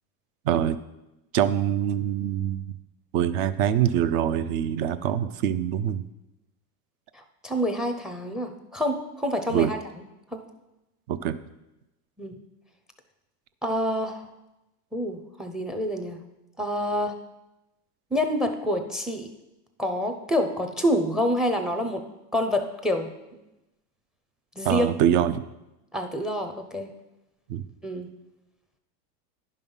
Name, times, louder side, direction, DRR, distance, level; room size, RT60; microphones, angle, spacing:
voice 1, 0.5-0.8 1.3-2.6 3.1-6.0 9.5-9.7 11.1-11.4 24.6-25.4 27.5-27.6, right 10 dB, 45° right, 13 dB, 0.6 m, -24 dB
voice 2, 7.1-9.8 10.3-10.4 12.2-12.3 13.6-14.2 14.9-16.2 16.6-17.1 18.1-19.3 19.8-22.0 22.3-23.1 24.6-24.9 25.9-26.9 27.8-28.1, equal, ahead, 7 dB, 0.5 m, -27 dB
10.5 x 5.5 x 5.4 m, 0.97 s
supercardioid pair, 125°, 48 cm